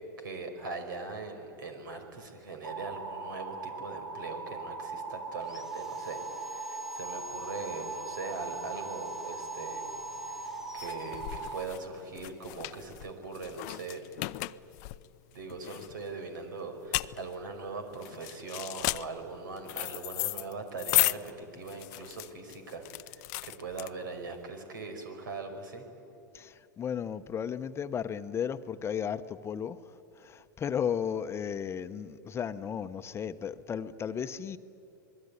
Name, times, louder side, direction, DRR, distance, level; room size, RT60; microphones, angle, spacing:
voice 1, 0.2-10.0 10.3-14.0 15.3-25.9, right 3 dB, 80° right, 6 dB, 5.2 m, -41 dB
sound 1, 2.6-11.7, right 4 dB, 65° right, 2.8 m, -40 dB
Sawing, 5.4-11.9, left 2 dB, 5° right, 1.5 m, -49 dB
sound 2, 9.9-24.3, left 24 dB, 55° left, 0.6 m, -35 dB
voice 2, 26.3-34.6, left 8 dB, 25° left, 11 dB, 0.9 m, -34 dB
26.5 x 21.0 x 9.8 m, 2.7 s
hypercardioid pair, 110°, 11 cm